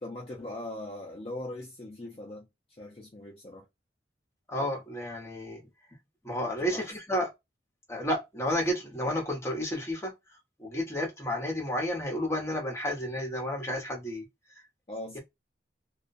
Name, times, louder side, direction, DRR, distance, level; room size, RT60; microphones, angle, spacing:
voice 1, 0.0-2.5 2.8-3.6 6.6-6.9 14.9-15.2, left 1 dB, 30° left, 0.4 m, -40 dB
voice 2, 4.5-5.6 6.2-7.3 7.9-10.1 10.6-14.3, equal, 15° left, 0.8 m, -31 dB
2.3 x 2.1 x 2.5 m
head